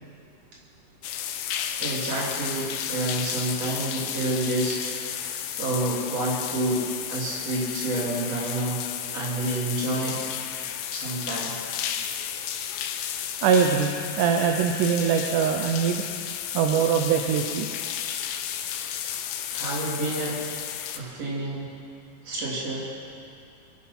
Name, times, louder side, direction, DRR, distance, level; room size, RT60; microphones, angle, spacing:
sound 1, 1.0-21.0, left 10 dB, 85° left, 2.5 m, -33 dB
voice 1, 1.8-8.9 9.1-10.3 10.9-11.6 18.9-20.4 21.0-21.7 22.2-22.9, right 2 dB, 45° right, -5 dB, 3.9 m, -29 dB
voice 2, 13.4-16.0 16.5-17.7 19.1-19.2, right 7 dB, 75° right, 3 dB, 2.1 m, -23 dB
22.0 x 10.0 x 5.8 m, 2.4 s
omnidirectional pair, 4.2 m